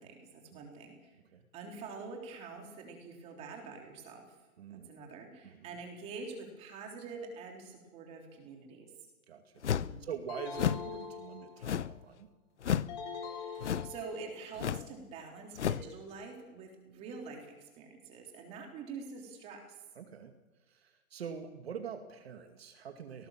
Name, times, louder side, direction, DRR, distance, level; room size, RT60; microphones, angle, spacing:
voice 1, 0.0-1.2 1.5-4.3 4.7-8.9 9.7-10.1 13.1-19.7, right 4 dB, 15° right, 2 dB, 3.5 m, -46 dB
voice 2, 4.6-4.9 5.4-5.8 9.3-12.3 20.0-20.3 20.7-23.3, right 7 dB, 45° right, 5 dB, 2.4 m, -44 dB
sound 1, 9.6-10.0 10.5-10.9 11.6-12.0 12.6-13.0 13.6-14.0 14.6-14.9 15.6-15.9, left 9 dB, 55° left, 0.8 m, -32 dB
sound 2, 10.3-11.8 12.9-14.5, left 6 dB, 30° left, 4.1 m, -43 dB
29.5 x 18.5 x 7.5 m, 1.1 s
hypercardioid pair, 170°, 43 cm